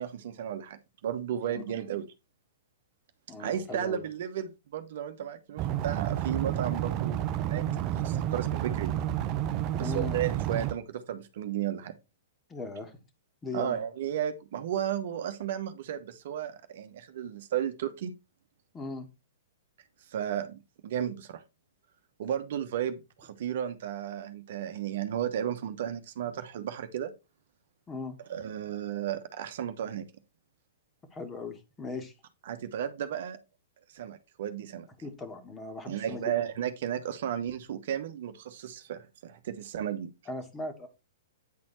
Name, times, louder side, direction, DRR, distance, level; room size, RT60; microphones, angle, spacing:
voice 1, 0.0-2.1 3.4-8.9 9.8-11.9 13.5-18.1 20.1-21.4 22.2-27.1 28.3-30.0 32.5-33.4 33.9-34.9 35.9-40.1, right 10 dB, 60° right, 1.1 m, -34 dB
voice 2, 3.3-4.0 9.8-10.2 12.5-13.0 13.4-13.8 18.7-19.1 27.9-28.2 31.1-32.1 35.0-36.3 40.3-40.9, left 3 dB, 20° left, 2.1 m, -39 dB
sound 1, 5.6-10.7, right 12 dB, 35° right, 0.7 m, -30 dB
9.4 x 4.3 x 4.3 m
hypercardioid pair, 115°, 0 cm